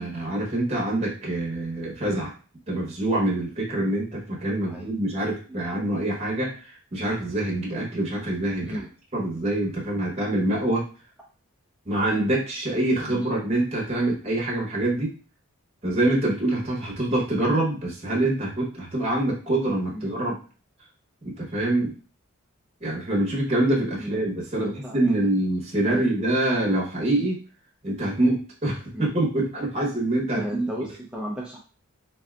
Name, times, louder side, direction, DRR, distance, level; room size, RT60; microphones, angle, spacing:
voice 1, 0.0-2.3 2.7-8.8 9.1-10.9 11.9-15.1 15.8-20.4 21.2-22.0 22.8-27.4 27.8-30.7, right 1 dB, 30° right, -3 dB, 0.8 m, -25 dB
voice 2, 24.5-25.3 25.9-26.1 28.9-29.1 30.3-31.6, equal, 5° right, -3 dB, 0.4 m, -35 dB
3.5 x 2.6 x 2.3 m, 0.37 s
head